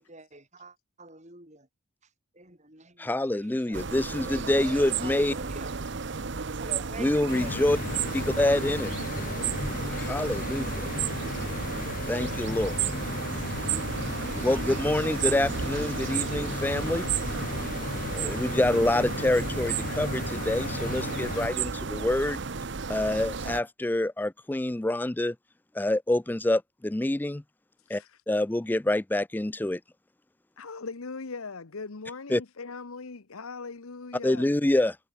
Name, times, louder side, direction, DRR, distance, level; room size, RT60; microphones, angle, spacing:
voice 1, 0.1-1.7 2.0-5.8 6.5-7.6, right 2 dB, 35° right, 5.4 m, -46 dB
voice 2, 3.0-5.3 7.0-7.8 8.1-8.9 9.9-10.9 12.1-12.8 14.4-17.1 18.1-22.4 22.9-25.4 25.7-27.4 27.9-29.8 32.3-32.4 34.2-35.0, left 1 dB, 10° left, 0.3 m, -26 dB
sound 1, 3.7-23.6, right 5 dB, 55° right, 0.8 m, -33 dB
sound 2, 7.3-21.5, left 3 dB, 40° left, 0.8 m, -35 dB
voice 3, 30.6-34.5, left 4 dB, 90° left, 1.0 m, -39 dB
head